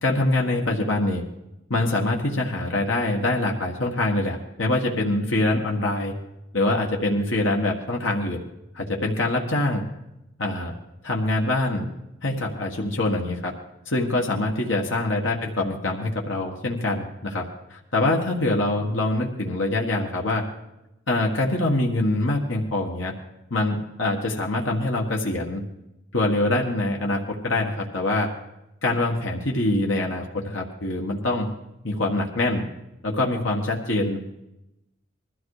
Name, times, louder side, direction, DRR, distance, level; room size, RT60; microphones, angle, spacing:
voice 1, 0.0-1.2 1.7-6.1 6.5-8.4 8.8-9.8 10.4-10.8 11.0-11.9 12.2-13.5 13.9-20.4 21.1-23.1 23.5-25.6 26.1-28.3 28.8-31.5 31.8-32.6 33.0-34.3, left 2 dB, 80° left, 0 dB, 1.7 m, -24 dB
20.5 x 13.5 x 5.0 m, 0.90 s
head